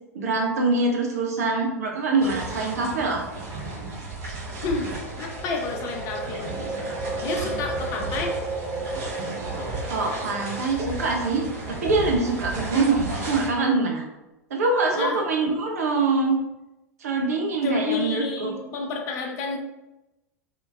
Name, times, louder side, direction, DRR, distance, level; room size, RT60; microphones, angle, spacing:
voice 1, 0.1-3.2 9.9-14.0 14.5-16.4 17.0-18.5, right 3 dB, 70° right, 1 dB, 0.6 m, -24 dB
sound 1, 2.2-13.5, right 2 dB, 45° right, 1.1 m, -34 dB
voice 2, 4.6-6.5 7.2-8.3 14.9-15.2 17.6-19.6, left 4 dB, 40° left, 1 dB, 0.5 m, -30 dB
sound 2, 4.7-12.8, right 2 dB, 30° right, 0.8 m, -35 dB
2.8 x 2.5 x 2.4 m, 0.99 s
figure-of-eight pair, 85°, 9 cm